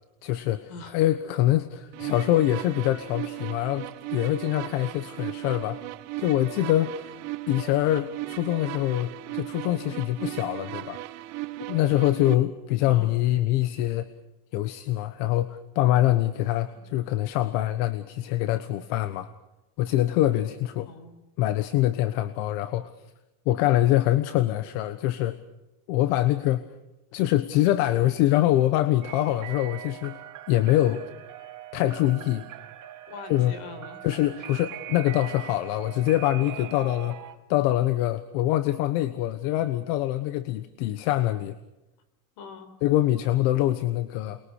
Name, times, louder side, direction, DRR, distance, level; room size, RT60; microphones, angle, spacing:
voice 1, 0.2-5.8 6.2-7.2 7.5-11.0 11.7-14.1 14.5-19.3 19.8-20.9 21.4-22.9 23.4-25.4 25.9-26.7 27.1-30.2 30.5-31.0 31.7-32.5 33.3-33.5 34.0-37.1 37.5-41.5 42.8-44.4, left 14 dB, 75° left, 12 dB, 1.4 m, -24 dB
sound 1, 1.9-12.3, right 18 dB, 65° right, 1.5 m, -37 dB
voice 2, 20.9-21.2 33.1-34.0 34.4-34.5 36.6-36.7 42.4-42.7, left 5 dB, 60° left, 10 dB, 4.7 m, -42 dB
sound 2, 29.0-37.3, right 13 dB, 40° right, 2.8 m, -42 dB
29.0 x 22.5 x 6.5 m, 0.99 s
cardioid pair, 145°, 45 cm